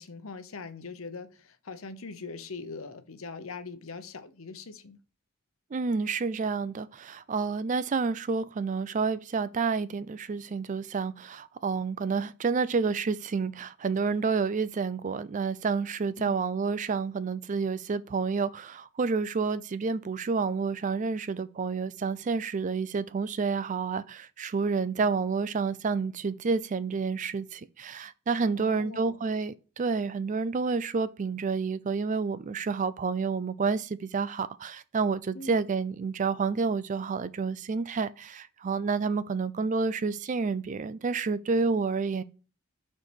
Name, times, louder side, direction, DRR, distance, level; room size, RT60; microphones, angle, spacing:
voice 1, 0.0-5.0 16.2-16.3 28.5-29.2 35.3-35.6, left 4 dB, 75° left, 0.9 m, -42 dB
voice 2, 5.7-42.2, right 4 dB, 35° right, 0.4 m, -29 dB
6.5 x 4.5 x 4.4 m
head